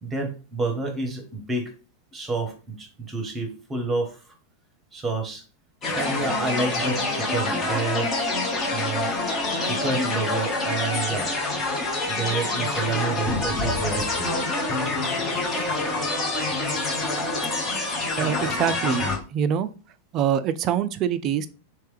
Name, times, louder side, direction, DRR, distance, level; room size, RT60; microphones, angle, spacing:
voice 1, 0.0-1.7 2.1-4.3 4.9-5.4 5.9-8.1 8.7-9.2 9.6-11.3 12.1-14.4, right 3 dB, 15° right, 3 dB, 1.0 m, -29 dB
sound 1, 5.8-19.2, left 2 dB, 25° left, 1.1 m, -26 dB
voice 2, 18.2-19.7 20.1-21.5, right 9 dB, 35° right, 13 dB, 0.3 m, -25 dB
3.2 x 3.0 x 3.2 m, 0.34 s
figure-of-eight pair, 90°, 0 cm